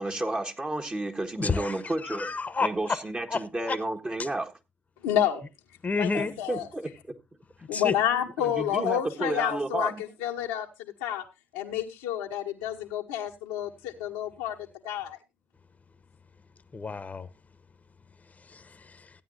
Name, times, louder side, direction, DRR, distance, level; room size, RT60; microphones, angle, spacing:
voice 1, 0.0-2.3 2.6-4.5 6.2-6.9 8.4-10.0, right 2 dB, 25° right, 1.5 m, -31 dB
voice 2, 1.4-3.0 3.3-3.8 5.8-6.3 7.7-7.9 16.7-17.3 18.5-19.1, left 4 dB, 35° left, 1.0 m, -30 dB
voice 3, 5.0-5.4 5.9-6.7 7.7-11.2 11.5-14.6 14.8-15.2, left 10 dB, 80° left, 1.1 m, -29 dB
16.0 x 9.4 x 2.7 m
hypercardioid pair, 40°, 4 cm